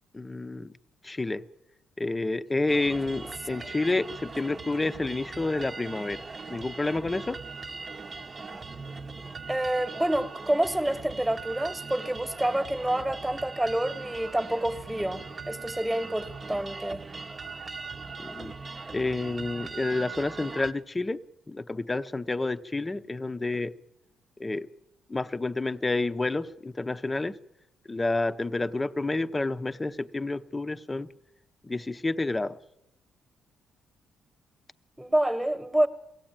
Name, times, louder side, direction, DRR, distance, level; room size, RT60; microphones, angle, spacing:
voice 1, 0.1-0.7 1.0-1.4 2.0-7.4 18.2-18.5 18.9-21.2 21.5-23.7 24.4-24.7 25.1-27.4 27.9-31.1 31.6-32.6, left 2 dB, 20° left, 0.8 m, -29 dB
sound 1, 2.7-20.7, right 4 dB, 30° right, 1.0 m, -40 dB
voice 2, 9.5-17.0 35.0-35.9, right 1 dB, 10° right, 1.4 m, -28 dB
22.5 x 16.5 x 8.9 m
cardioid pair, 90°, 0 cm